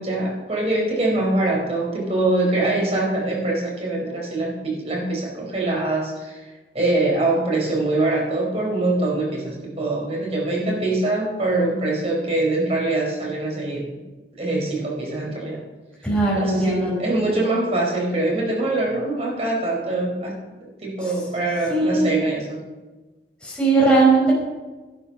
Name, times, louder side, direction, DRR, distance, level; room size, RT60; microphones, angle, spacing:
voice 1, 0.0-6.4 6.7-13.9 14.4-15.6 16.4-22.6, right 2 dB, 35° right, -1 dB, 4.0 m, -23 dB
voice 2, 16.0-17.4 21.7-22.1 23.4-24.3, right 3 dB, 5° left, -6 dB, 4.8 m, -19 dB
12.0 x 11.5 x 5.8 m, 1.2 s
head